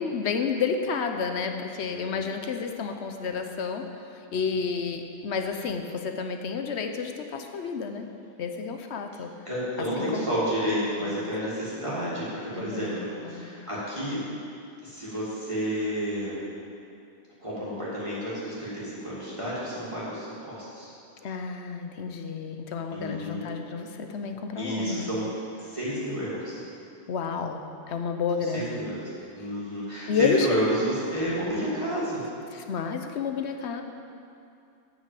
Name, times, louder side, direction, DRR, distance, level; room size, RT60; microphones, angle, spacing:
voice 1, 0.0-8.1 8.4-9.3 10.0-10.3 11.0-11.1 12.6-13.6 21.2-25.1 27.1-28.8 30.1-30.9 32.5-33.8, left 5 dB, 70° left, 5 dB, 1.0 m, -31 dB
voice 2, 9.5-14.2 14.8-16.4 17.4-20.9 22.9-23.4 24.6-25.3 25.6-26.6 28.5-29.1 29.3-32.2, equal, 25° right, -10 dB, 2.2 m, -30 dB
8.6 x 6.0 x 7.6 m, 2.6 s
omnidirectional pair, 1.2 m